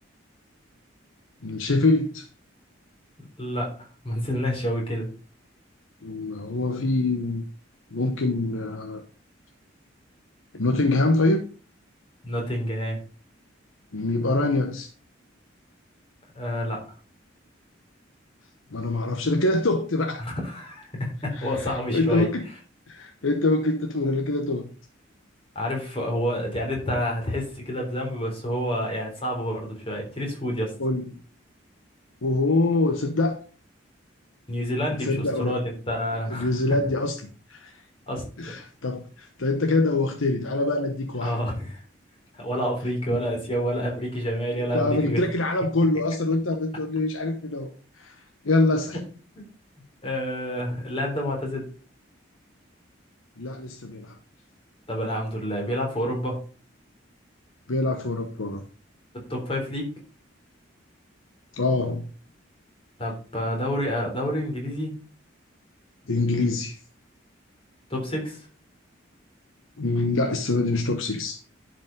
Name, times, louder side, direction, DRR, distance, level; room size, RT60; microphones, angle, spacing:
voice 1, 1.4-2.3 6.0-7.4 7.9-9.0 10.5-11.4 13.9-14.9 18.7-20.2 21.3-22.5 22.9-24.7 30.8-31.2 32.2-33.4 34.9-35.6 36.3-37.8 38.4-41.4 44.6-48.2 48.4-49.0 53.4-54.2 57.7-58.6 61.5-62.0 66.1-66.8 69.8-71.4, left 2 dB, 90° left, 1.1 m, -25 dB
voice 2, 3.4-5.1 12.2-13.0 16.3-16.8 20.2-22.3 25.6-30.7 34.5-36.5 38.1-38.2 41.2-41.8 42.3-45.2 48.9-49.0 49.4-49.5 50.0-51.7 54.9-56.4 59.3-59.9 63.0-64.9 67.9-68.5, equal, 30° left, 3.7 m, -28 dB
11.0 x 5.3 x 5.3 m
head